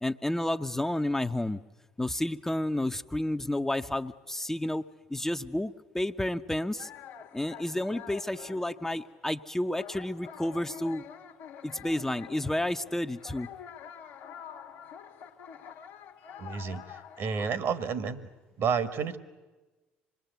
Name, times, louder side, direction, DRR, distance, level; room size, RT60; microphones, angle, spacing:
voice 1, 0.0-1.6 2.0-4.8 5.1-6.9 7.3-11.0 11.6-13.5, left 1 dB, 10° left, 7 dB, 0.8 m, -31 dB
sound 1, 6.8-17.5, left 8 dB, 70° left, 1.4 m, -47 dB
voice 2, 16.4-18.3 18.6-19.2, right 6 dB, 55° right, 13 dB, 1.6 m, -31 dB
26.0 x 21.0 x 8.1 m, 1.2 s
hypercardioid pair, 60°, 5 cm